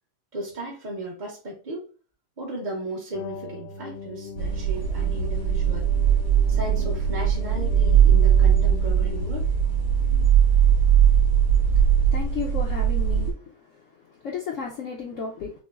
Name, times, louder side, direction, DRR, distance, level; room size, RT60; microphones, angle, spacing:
voice 1, 0.3-1.8 2.4-5.9 6.5-9.5, right 2 dB, 40° right, -4 dB, 0.6 m, -35 dB
sound 1, 3.1-10.2, left 3 dB, 85° left, 1.3 m, -40 dB
sound 2, 4.4-13.3, right 8 dB, 75° right, 2.6 m, -20 dB
voice 2, 12.1-13.4 14.2-15.5, left 5 dB, 65° left, -2 dB, 0.8 m, -33 dB
5.9 x 2.1 x 2.3 m, 0.38 s
omnidirectional pair, 1.9 m